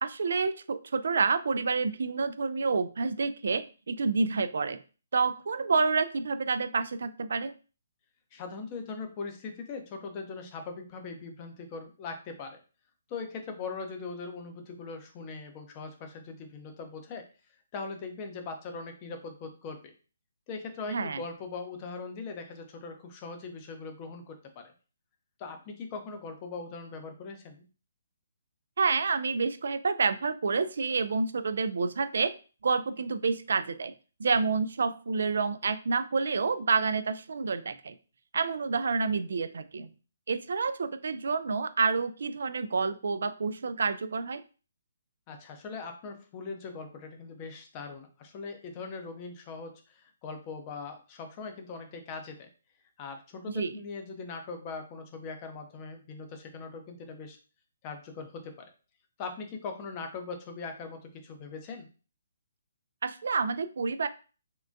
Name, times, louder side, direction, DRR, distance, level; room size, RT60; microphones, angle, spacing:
voice 1, 0.0-4.8 5.1-7.5 20.9-21.2 28.8-32.4 32.6-33.9 34.2-37.9 38.3-39.9 40.3-44.4 53.5-53.7 63.0-64.1, right 4 dB, 70° right, 13 dB, 0.3 m, -28 dB
voice 2, 8.3-12.6 13.1-17.2 17.7-19.9 20.5-24.7 25.4-27.6 45.3-52.5 53.0-57.4 57.8-58.7 59.2-61.9, left 4 dB, 30° left, 5 dB, 0.6 m, -40 dB
3.6 x 2.2 x 2.6 m, 0.36 s
hypercardioid pair, 150°, 0 cm